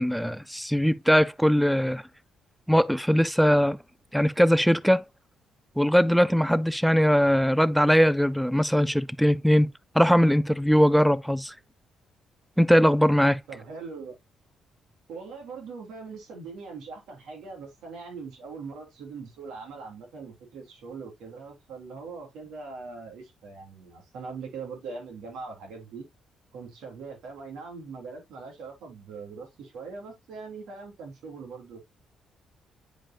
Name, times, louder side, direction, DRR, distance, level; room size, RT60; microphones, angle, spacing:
voice 1, 0.0-2.0 2.7-3.8 4.1-5.0 5.8-9.7 10.0-11.5 12.6-13.4, equal, ahead, 0.4 m, -21 dB
voice 2, 13.5-14.2 15.1-26.1 26.5-31.8, right 4 dB, 80° right, 3.0 m, -41 dB
8.9 x 5.1 x 2.2 m
cardioid pair, 90°, 0 cm